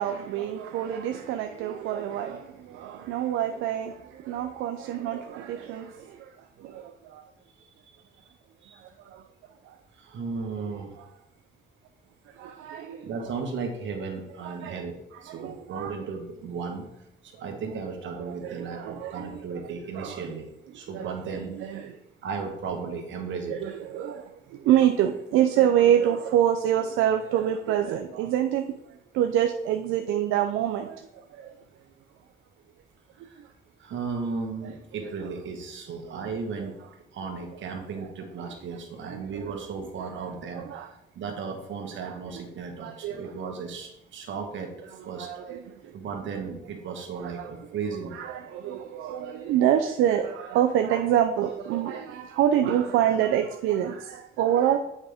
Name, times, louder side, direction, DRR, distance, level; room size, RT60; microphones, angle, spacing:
voice 1, 0.0-2.4 2.7-3.9 4.3-5.9 7.1-7.2 12.4-13.0 14.4-14.8 15.3-15.9 18.1-19.6 19.9-20.2 20.9-21.9 23.5-24.2 24.7-28.6 29.1-30.9 34.6-34.7 35.0-35.1 36.6-36.7 38.4-38.5 39.1-39.5 40.5-40.9 42.0-42.2 42.8-43.2 45.2-45.6 47.1-47.5 48.1-54.8, right 10 dB, 90° right, 0.4 m, -26 dB
voice 2, 9.9-10.9 13.0-16.8 17.2-20.5 20.7-21.5 22.2-23.6 33.2-33.4 33.8-36.7 37.1-40.9 41.1-44.7 45.0-45.3 45.9-48.2, right 5 dB, 70° right, 1.4 m, -35 dB
7.3 x 5.1 x 3.5 m
cardioid pair, 90°, 20 cm